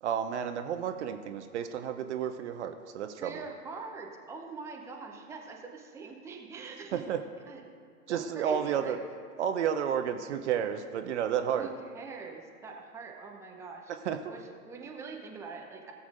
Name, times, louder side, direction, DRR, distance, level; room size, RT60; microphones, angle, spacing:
voice 1, 0.0-3.4 6.9-7.2 8.1-9.0 9.4-11.7 14.0-14.3, right 8 dB, 50° right, 8 dB, 0.6 m, -31 dB
voice 2, 3.2-7.0 7.5-7.6 8.1-9.0 11.5-13.9 14.2-15.9, right 4 dB, 5° right, 1 dB, 0.7 m, -43 dB
17.5 x 7.1 x 2.5 m, 2.3 s
figure-of-eight pair, 100°, 44 cm